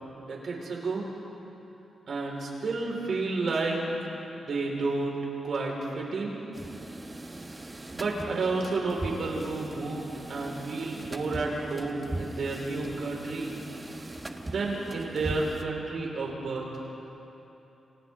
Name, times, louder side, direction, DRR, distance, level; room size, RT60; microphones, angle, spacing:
voice 1, 0.2-1.1 2.1-3.8 4.3-5.2 5.4-6.4 7.9-13.5 14.4-16.8, right 3 dB, 60° right, -2 dB, 4.9 m, -31 dB
sound 1, 6.5-15.6, right 2 dB, 15° right, 1.2 m, -39 dB
29.0 x 27.0 x 3.8 m, 3.0 s
wide cardioid pair, 135°, 0 cm